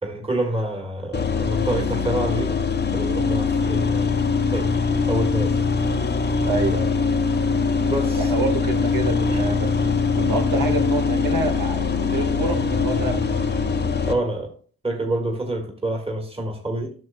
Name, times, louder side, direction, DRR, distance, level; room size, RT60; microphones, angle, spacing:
voice 1, 0.0-2.6 2.9-4.1 4.5-4.7 5.1-5.7 7.9-8.3 9.3-9.4 14.1-14.5 14.8-16.9, right 1 dB, 15° right, 1.9 m, -27 dB
sound 1, 1.1-14.1, left 4 dB, 30° left, 0.8 m, -22 dB
voice 2, 6.4-6.9 8.2-13.6, right 3 dB, 75° right, 1.8 m, -27 dB
10.5 x 6.5 x 2.3 m
supercardioid pair, 50°, 35 cm